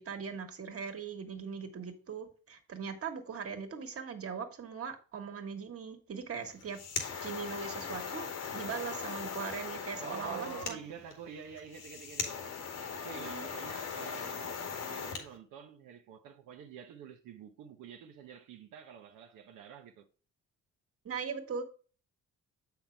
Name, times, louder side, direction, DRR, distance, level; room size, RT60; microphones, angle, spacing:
voice 1, 0.0-6.8 7.2-8.3 8.5-10.8 13.1-13.5 21.0-21.6, right 6 dB, 50° right, 1.7 m, -40 dB
sound 1, 6.5-15.3, left 6 dB, 90° left, 2.3 m, -39 dB
voice 2, 10.0-12.6 12.9-20.1, right 7 dB, 85° right, 0.9 m, -48 dB
7.5 x 5.8 x 3.4 m
cardioid pair, 90°, 30 cm